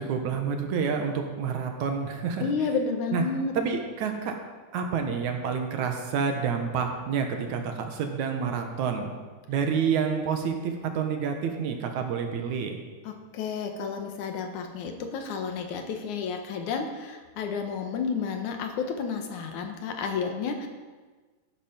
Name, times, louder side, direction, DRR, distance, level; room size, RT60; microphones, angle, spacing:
voice 1, 0.0-2.5 3.1-3.2 3.6-4.4 4.7-9.1 9.5-12.8, right 6 dB, 75° right, 4 dB, 2.7 m, -28 dB
voice 2, 2.4-3.5 13.0-20.7, left 5 dB, 75° left, 5 dB, 2.7 m, -31 dB
14.0 x 11.5 x 5.2 m, 1.4 s
omnidirectional pair, 3.5 m